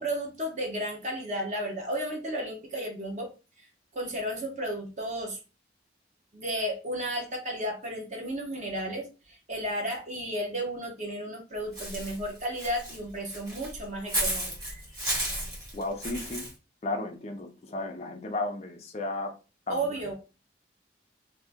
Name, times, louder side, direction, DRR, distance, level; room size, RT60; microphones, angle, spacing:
voice 1, 0.0-3.3 3.6-3.7 3.9-5.4 6.3-14.5 19.7-20.1, right 1 dB, 40° right, 0.8 m, -33 dB
Walk footsteps / Bird, 11.7-16.5, right 1 dB, 20° right, 1.4 m, -33 dB
voice 2, 15.7-16.5 16.8-19.4 19.7-19.9, left 2 dB, 35° left, 0.4 m, -34 dB
2.7 x 2.5 x 3.4 m
head